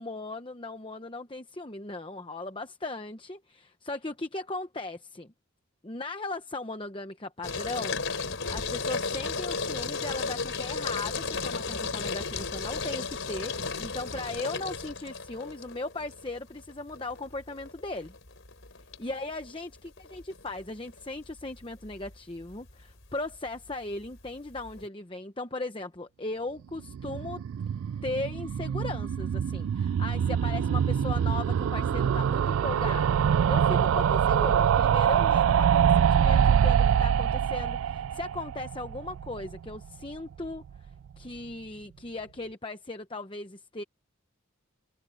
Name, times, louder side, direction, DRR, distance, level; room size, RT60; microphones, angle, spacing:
voice 1, 0.0-5.3 5.8-8.0 8.5-18.1 19.0-19.7 20.0-27.4 28.0-33.2 33.5-40.9 41.2-43.8, left 2 dB, 25° left, 0.9 m, -37 dB
sound 1, 7.4-24.9, left 4 dB, 60° left, 4.3 m, -35 dB
sound 2, 26.8-39.9 40.1-40.2 40.4-40.5 40.7-40.8, right 8 dB, 70° right, 0.3 m, -25 dB
head